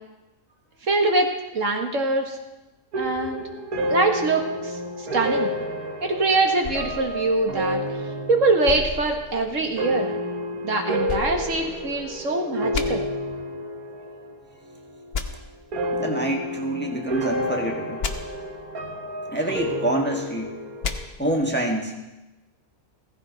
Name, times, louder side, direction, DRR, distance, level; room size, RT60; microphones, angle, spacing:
voice 1, 0.9-2.4 3.0-3.4 3.9-4.7 5.0-5.5 6.0-7.8 8.3-10.1 10.6-13.0, right 3 dB, 60° right, 3 dB, 1.8 m, -23 dB
sound 1, 2.9-14.4 14.7-15.3 15.7-21.1, equal, 90° right, 1.8 m, -30 dB
sound 2, 6.6-8.1 8.7-9.9 11.1-12.2 12.7-12.8 15.1-15.2 18.0-18.1 20.8-21.0, left 5 dB, 50° left, 1.1 m, -33 dB
voice 2, 16.0-18.0 19.3-20.5 21.2-21.9, right 1 dB, 10° left, 1 dB, 1.5 m, -26 dB
16.0 x 15.0 x 4.0 m, 1.0 s
omnidirectional pair, 1.5 m